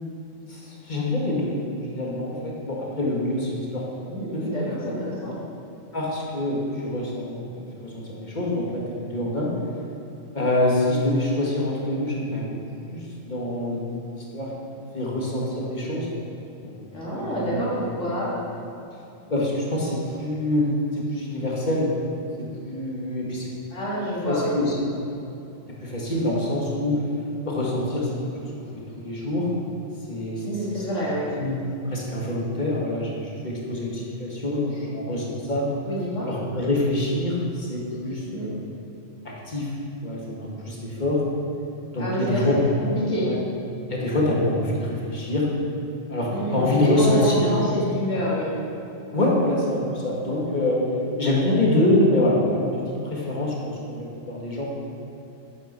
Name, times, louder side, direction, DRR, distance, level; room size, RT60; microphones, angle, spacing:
voice 1, 0.4-1.6 1.9-3.9 4.3-4.7 5.9-9.5 10.3-12.5 12.9-14.5 14.9-16.1 16.6-16.8 17.1-17.8 19.3-21.9 22.4-23.5 24.3-24.8 25.8-27.1 27.4-28.1 28.4-28.7 29.0-29.5 30.1-30.4 30.7-30.9 31.4-35.7 36.2-38.6 39.2-39.7 40.0-41.2 41.9-42.6 43.2-43.4 43.9-45.5 46.1-47.5 48.1-48.2 49.1-50.8 51.2-54.6, left 1 dB, 35° left, -4 dB, 2.4 m, -25 dB
voice 2, 4.0-5.3 16.9-18.3 23.7-24.6 30.4-31.3 35.8-36.3 38.2-38.5 42.0-42.4 42.8-43.3 46.3-48.5, equal, 75° left, -8 dB, 3.2 m, -27 dB
10.5 x 9.2 x 6.8 m, 2.8 s
omnidirectional pair, 1.3 m